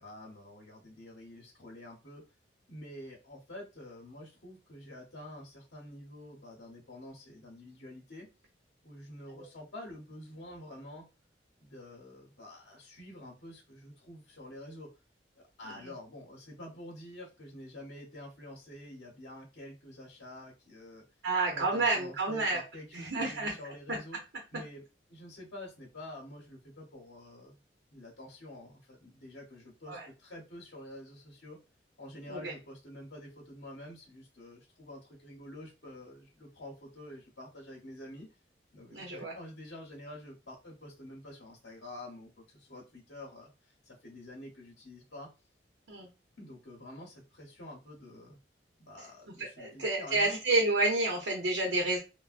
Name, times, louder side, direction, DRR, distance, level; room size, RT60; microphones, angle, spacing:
voice 1, 0.0-2.2 2.7-8.3 8.8-11.1 11.6-14.9 15.4-21.0 21.5-24.2 24.5-24.8 25.1-27.6 27.9-31.6 32.0-38.3 38.7-45.3 46.4-48.4 48.8-50.4, left 1 dB, 65° left, -2 dB, 0.9 m, -48 dB
voice 2, 21.2-22.6 22.9-23.5 29.9-30.1 32.3-32.5 38.9-39.3 45.9-46.1 49.4-52.0, right 2 dB, 80° right, 0 dB, 0.7 m, -30 dB
3.3 x 2.1 x 2.4 m, 0.29 s
head